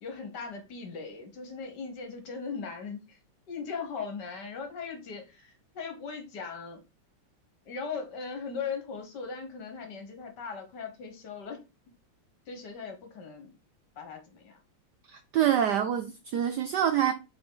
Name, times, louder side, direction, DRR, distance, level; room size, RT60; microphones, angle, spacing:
voice 1, 0.0-3.2 3.5-6.8 7.6-11.6 12.5-13.5 14.0-14.6, left 5 dB, 55° left, 1.6 m, -39 dB
voice 2, 15.1-17.1, right 10 dB, 75° right, 0.9 m, -26 dB
5.1 x 4.9 x 3.8 m
omnidirectional pair, 2.4 m